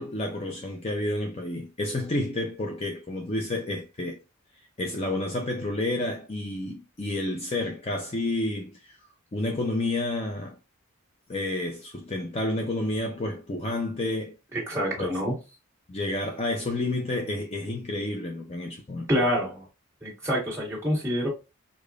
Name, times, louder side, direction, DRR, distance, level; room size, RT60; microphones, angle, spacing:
voice 1, 0.0-4.2 4.8-9.0 9.3-10.6 11.3-14.3 15.0-15.1 15.9-19.2, left 2 dB, 30° left, 0.5 m, -30 dB
voice 2, 14.7-15.4 19.1-19.6 20.0-21.3, equal, 15° right, 1.8 m, -26 dB
4.9 x 2.3 x 2.4 m
head